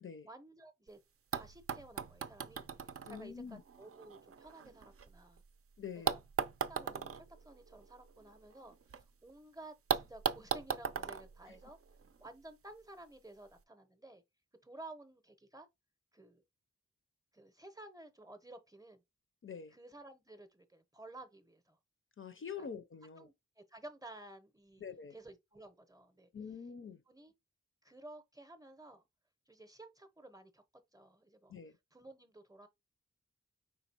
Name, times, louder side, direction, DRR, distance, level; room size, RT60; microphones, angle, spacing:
voice 1, 0.3-1.0 1.3-5.4 5.9-6.2 6.7-11.8 12.2-14.2 14.6-15.7 16.1-16.4 17.3-19.0 19.7-21.8 22.6-22.7 23.2-24.8 25.1-26.3 27.1-27.3 27.8-29.1 29.5-30.6 30.9-31.5 31.9-32.7, right 2 dB, 10° right, 0.7 m, -54 dB
sound 1, 0.9-1.0 1.3-5.4 6.1-9.0 9.3-9.4 9.9-12.3 13.3-13.4, right 6 dB, 50° right, 0.5 m, -39 dB
voice 2, 3.1-3.6 5.8-6.2 11.5-11.6 19.4-19.8 22.2-23.3 24.8-25.1 26.3-27.0 31.5-31.7, left 6 dB, 45° left, 0.5 m, -46 dB
5.1 x 3.7 x 2.8 m
wide cardioid pair, 125°, 29 cm